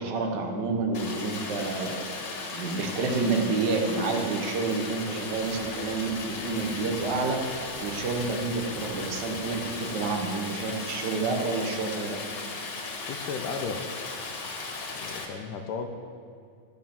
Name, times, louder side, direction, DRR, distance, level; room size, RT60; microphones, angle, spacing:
voice 1, 0.0-2.0 2.5-12.2, right 3 dB, 60° right, 2 dB, 1.1 m, -29 dB
Stream, 0.9-15.3, left 3 dB, 60° left, 3.0 m, -37 dB
sound 1, 5.0-10.3, equal, 25° right, 1.6 m, -48 dB
voice 2, 13.1-13.9 15.0-16.0, left 5 dB, 80° left, 5 dB, 2.3 m, -34 dB
12.5 x 8.9 x 7.3 m, 2.3 s
omnidirectional pair, 3.8 m